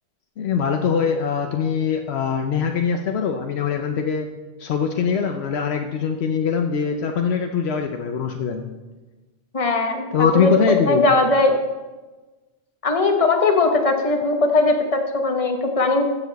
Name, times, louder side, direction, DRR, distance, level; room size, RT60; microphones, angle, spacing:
voice 1, 0.4-4.3 4.6-8.7 10.1-11.2, left 6 dB, 85° left, 4 dB, 1.0 m, -22 dB
voice 2, 9.5-10.0 10.3-10.5 10.9-11.6 12.8-16.1, left 3 dB, 35° left, 4 dB, 1.1 m, -19 dB
14.5 x 7.1 x 4.1 m, 1.2 s
omnidirectional pair, 1.1 m